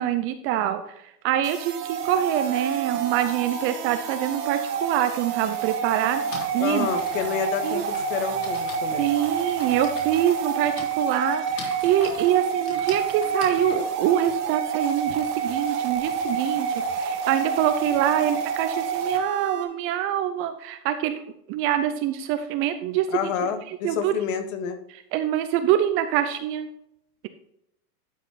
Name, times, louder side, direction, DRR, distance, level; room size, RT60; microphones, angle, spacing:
voice 1, 0.0-6.2 6.5-6.9 7.6-7.8 9.0-24.1 24.9-26.7, right 11 dB, 30° right, 10 dB, 0.5 m, -25 dB
sound 1, 1.4-19.6, right 6 dB, 75° right, 2.5 m, -28 dB
Typing, 4.9-5.0 6.0-15.1, left 4 dB, 85° left, 3.6 m, -43 dB
voice 2, 6.6-9.1 23.1-24.8, left 7 dB, 55° left, 7 dB, 1.7 m, -29 dB
12.5 x 5.4 x 3.7 m, 0.79 s
hypercardioid pair, 130°, 47 cm